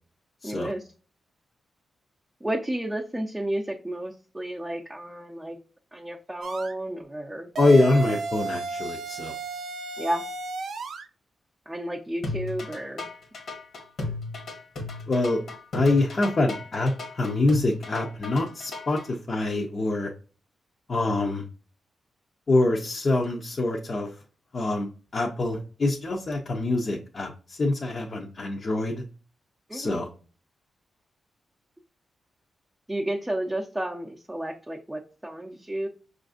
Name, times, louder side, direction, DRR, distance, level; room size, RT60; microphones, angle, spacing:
voice 1, 0.4-0.8 2.4-5.6 5.9-7.5 10.0-10.2 11.7-13.1 29.7-30.0 32.9-35.9, right 1 dB, 10° right, -2 dB, 0.6 m, -32 dB
cartoon bounce synth pitch bend, 6.4-6.7 7.5-11.1, right 3 dB, 70° right, 0.5 m, -34 dB
voice 2, 7.6-9.3 15.1-15.4 15.7-20.1 20.9-21.4 22.5-24.2 24.5-24.9 25.1-29.0 29.7-30.1, left 2 dB, 45° left, -1 dB, 0.6 m, -25 dB
sound 1, 12.2-19.0, left 3 dB, 70° left, 1.0 m, -35 dB
5.7 x 2.5 x 2.4 m, 0.37 s
cardioid pair, 105°, 0 cm